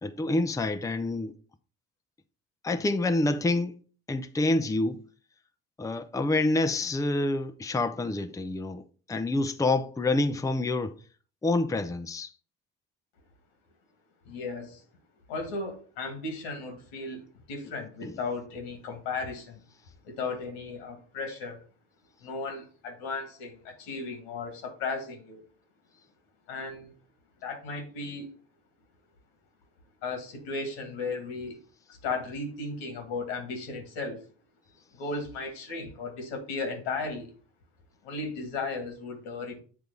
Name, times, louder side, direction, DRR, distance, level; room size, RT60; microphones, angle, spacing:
voice 1, 0.0-1.3 2.6-3.8 4.1-5.0 5.8-8.8 9.1-11.0 11.4-12.3 18.0-18.1, left 2 dB, 10° left, 0.6 m, -27 dB
voice 2, 14.3-14.8 15.3-19.6 20.0-21.6 22.2-25.4 26.5-26.9 27.4-28.3 30.0-31.6 31.9-34.2 34.9-37.3 38.0-39.6, left 3 dB, 85° left, 2.0 m, -35 dB
7.9 x 3.4 x 5.3 m
supercardioid pair, 75°, 32 cm